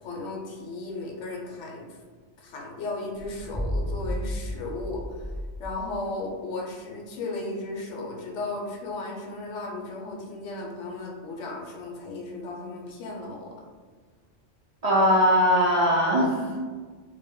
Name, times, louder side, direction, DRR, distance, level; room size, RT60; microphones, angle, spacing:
voice 1, 0.0-2.0 2.4-5.3 5.6-13.5, left 2 dB, 80° left, -1 dB, 0.9 m, -35 dB
sound 1, 3.2-6.0, equal, 10° right, 0.6 m, -33 dB
voice 2, 14.8-16.6, equal, 90° right, -7 dB, 0.3 m, -20 dB
2.1 x 2.1 x 3.4 m, 1.5 s
omnidirectional pair, 1.2 m